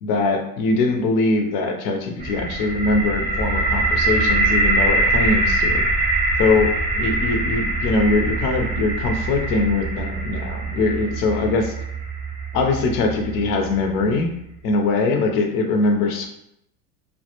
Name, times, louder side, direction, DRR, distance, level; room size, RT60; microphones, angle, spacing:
voice 1, 0.0-5.9 6.4-11.7 12.5-14.3 14.6-16.3, left 3 dB, 50° left, 3 dB, 0.6 m, -22 dB
sound 1, 2.2-14.0, right 2 dB, 15° right, 0.5 m, -23 dB
2.1 x 2.1 x 2.8 m, 0.77 s
hypercardioid pair, 100°, 45 cm